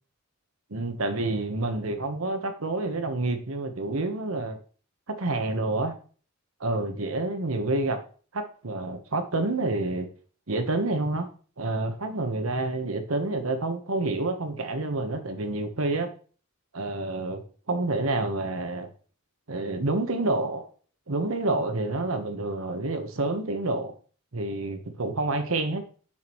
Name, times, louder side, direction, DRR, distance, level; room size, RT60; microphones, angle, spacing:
voice 1, 0.7-4.6 5.1-6.0 6.6-8.0 8.3-10.1 10.5-11.3 11.6-16.1 16.7-17.4 17.7-18.9 19.5-20.7 21.1-23.9 24.3-25.8, right 2 dB, 75° right, 7 dB, 1.1 m, -28 dB
7.6 x 5.9 x 3.0 m, 0.40 s
head